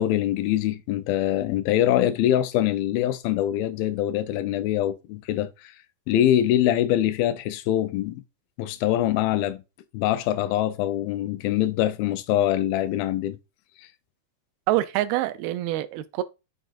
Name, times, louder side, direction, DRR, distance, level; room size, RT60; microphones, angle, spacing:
voice 1, 0.0-5.7 6.1-8.2 8.6-9.6 9.9-13.4, left 12 dB, 80° left, 2.4 m, -24 dB
voice 2, 14.7-16.2, right 15 dB, 85° right, 2.6 m, -25 dB
7.4 x 6.2 x 2.5 m
omnidirectional pair, 4.3 m